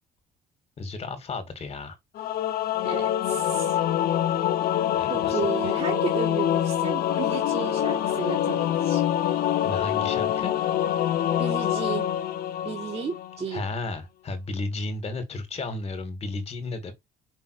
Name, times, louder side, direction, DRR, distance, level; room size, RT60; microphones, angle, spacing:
voice 1, 0.8-2.0 5.0-5.7 9.6-10.5 13.5-16.9, left 3 dB, 35° left, 2.2 m, -33 dB
Singing / Musical instrument, 2.2-13.4, left 11 dB, 60° left, 0.8 m, -25 dB
voice 2, 2.8-3.8 5.1-9.0 11.3-12.1 12.6-13.7, right 6 dB, 40° right, 1.8 m, -33 dB
5.6 x 3.5 x 4.8 m
cardioid pair, 110°, 17 cm